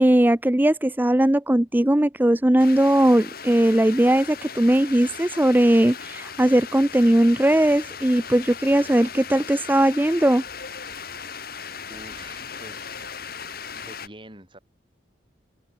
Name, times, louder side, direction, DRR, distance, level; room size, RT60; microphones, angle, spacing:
voice 1, 0.0-10.4, right 1 dB, 10° right, 0.5 m, -19 dB
sound 1, 2.6-14.1, left 6 dB, 50° left, 3.4 m, -38 dB
voice 2, 11.9-13.0 13.7-14.6, right 1 dB, 25° right, 6.7 m, -46 dB
head